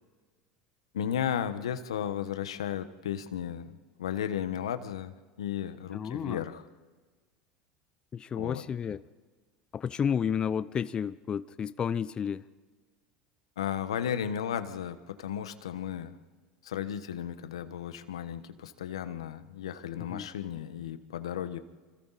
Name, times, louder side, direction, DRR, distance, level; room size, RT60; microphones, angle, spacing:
voice 1, 0.9-6.6 8.3-8.6 13.6-16.2 16.6-21.6, left 9 dB, 90° left, 11 dB, 1.2 m, -34 dB
voice 2, 5.9-6.4 8.1-9.0 9.7-12.4 20.1-20.3, left 7 dB, 30° left, 15 dB, 0.6 m, -31 dB
26.5 x 26.0 x 4.1 m, 1.4 s
hypercardioid pair, 90°, 3 cm